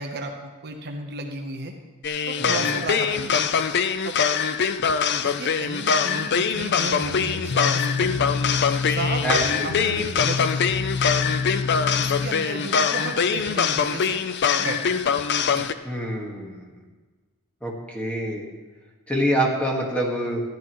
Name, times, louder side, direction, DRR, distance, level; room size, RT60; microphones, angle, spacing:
voice 1, 0.0-1.7 2.3-3.4 4.0-4.2 5.2-8.2 8.9-10.8 12.0-14.2 14.6-15.0 15.5-15.7, right 2 dB, 45° right, 3 dB, 0.9 m, -34 dB
sound 1, 2.0-15.7, left 6 dB, 50° left, 0.5 m, -23 dB
voice 2, 2.4-2.7 9.2-10.2 15.8-16.7 17.6-18.4 19.1-20.4, equal, 5° left, -2 dB, 1.6 m, -26 dB
sound 2, 7.0-12.3, left 4 dB, 70° left, 1.0 m, -28 dB
14.5 x 10.5 x 3.1 m, 1.3 s
head